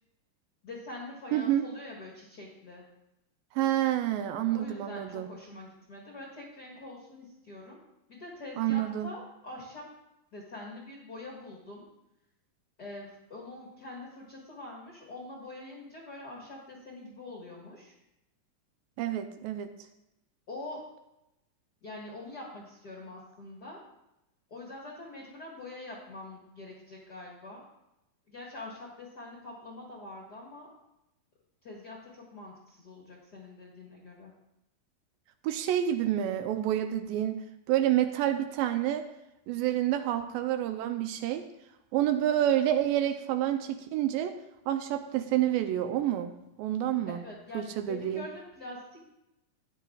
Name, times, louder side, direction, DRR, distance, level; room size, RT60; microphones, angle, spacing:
voice 1, 0.6-2.8 4.5-7.8 8.1-9.8 10.3-11.8 12.8-17.9 20.5-20.8 21.8-23.8 24.5-27.6 28.3-30.7 31.6-34.3 47.1-49.0, left 2 dB, 50° left, -4 dB, 1.2 m, -44 dB
voice 2, 1.3-1.7 3.5-5.3 8.6-9.1 19.0-19.7 35.4-37.4 37.7-39.0 39.5-41.5 41.9-44.3 44.7-46.3 46.6-47.2 47.5-48.3, right 12 dB, 80° right, 8 dB, 2.2 m, -28 dB
13.0 x 9.7 x 2.3 m, 0.90 s
omnidirectional pair, 4.2 m